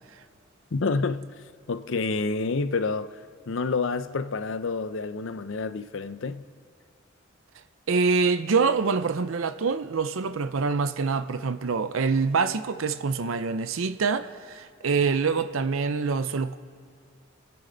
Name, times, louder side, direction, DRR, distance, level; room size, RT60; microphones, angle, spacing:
voice 1, 0.7-1.3 1.7-6.4, left 4 dB, 70° left, 0.6 m, -28 dB
voice 2, 7.9-16.6, right 4 dB, 80° right, 0.6 m, -25 dB
29.5 x 10.5 x 3.9 m
head